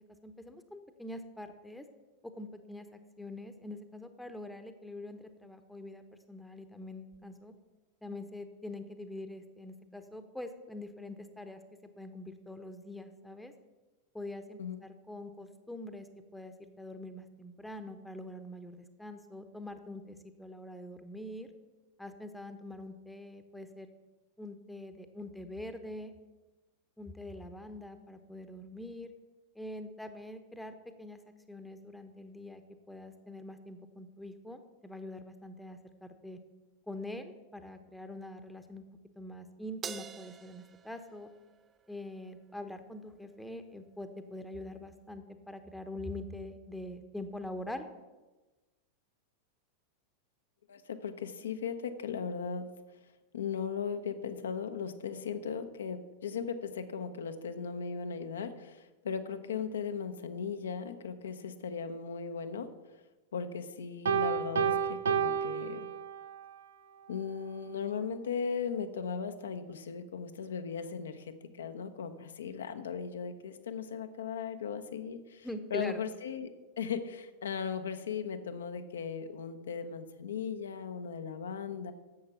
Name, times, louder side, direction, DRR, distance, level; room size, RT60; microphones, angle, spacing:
voice 1, 0.0-1.8 2.2-7.5 8.0-13.5 14.1-16.1 16.3-21.5 22.0-23.9 24.4-26.1 27.0-29.1 29.5-31.2 31.5-32.6 32.9-36.4 36.9-38.8 39.2-41.3 41.9-47.9 75.4-76.0, left 1 dB, 5° left, 8 dB, 1.0 m, -44 dB
Crash cymbal, 39.8-42.4, right 7 dB, 25° right, 0.7 m, -46 dB
voice 2, 50.7-52.7 53.3-62.7 63.3-65.9 67.1-81.9, left 6 dB, 65° left, 9 dB, 0.9 m, -37 dB
Piano, 64.1-66.4, right 7 dB, 65° right, 0.7 m, -30 dB
10.5 x 7.5 x 7.0 m, 1.2 s
figure-of-eight pair, 90°, 0 cm